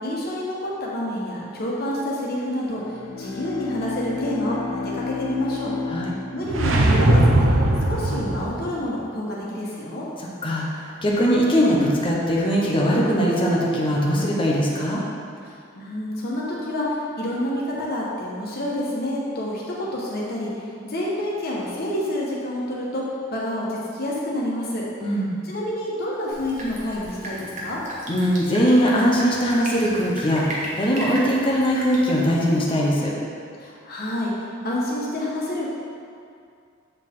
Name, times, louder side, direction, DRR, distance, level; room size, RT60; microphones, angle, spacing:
voice 1, 0.0-2.8 3.2-5.7 6.3-7.5 7.9-10.1 15.7-19.6 19.9-20.5 20.8-23.0 23.3-24.8 25.4-27.8 33.6-34.3 34.6-35.7, left 1 dB, 50° left, -5 dB, 1.4 m, -28 dB
Bowed string instrument, 2.7-7.5, left 4 dB, 80° left, 0.6 m, -32 dB
sound 1, 6.5-8.7, right 1 dB, 90° right, 0.7 m, -19 dB
voice 2, 10.2-15.0 25.0-25.4 28.1-33.1, equal, 25° left, -4 dB, 0.9 m, -21 dB
Drip, 26.3-32.9, equal, 40° right, 1.3 m, -35 dB
7.9 x 4.7 x 3.7 m, 2.4 s
head